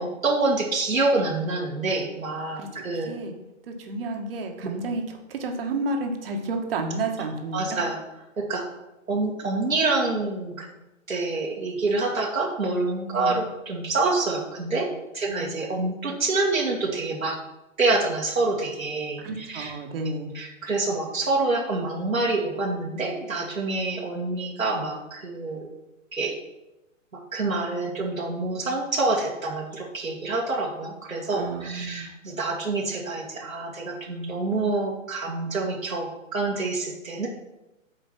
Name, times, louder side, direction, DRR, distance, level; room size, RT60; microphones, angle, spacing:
voice 1, 0.0-3.1 7.5-8.0 8.4-8.7 9.1-10.7 11.1-14.9 15.1-17.4 17.8-19.7 20.3-25.7 26.1-26.4 27.3-37.3, right 3 dB, 80° right, -2 dB, 1.9 m, -27 dB
voice 2, 2.6-3.3 3.7-7.8 13.1-13.3 15.3-15.4 19.2-20.3 31.3-32.1, right 2 dB, 45° right, 3 dB, 1.6 m, -31 dB
8.4 x 5.0 x 6.1 m, 0.97 s
figure-of-eight pair, 125°, 40 cm